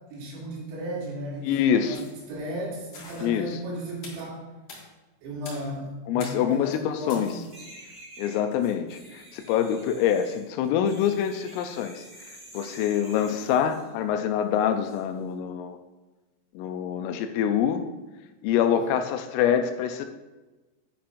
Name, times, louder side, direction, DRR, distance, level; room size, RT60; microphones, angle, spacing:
voice 1, 0.1-2.0 2.3-4.4 5.2-7.4 18.8-18.9, right 1 dB, 75° right, -5 dB, 5.3 m, -35 dB
voice 2, 1.4-2.0 3.2-3.6 6.1-7.3 8.2-12.0 12.5-15.8 16.5-17.9 18.4-20.1, left 9 dB, 85° left, 7 dB, 3.1 m, -25 dB
sound 1, 1.9-2.3 2.9-3.3 4.0-4.3 4.7-4.8 5.4-5.7 6.2-6.5 7.1-7.6, left 3 dB, 55° left, 2.2 m, -44 dB
sound 2, 7.0-13.9 14.8-15.0, right 1 dB, 10° right, 2.1 m, -48 dB
10.0 x 10.0 x 2.6 m, 1.2 s
omnidirectional pair, 6.0 m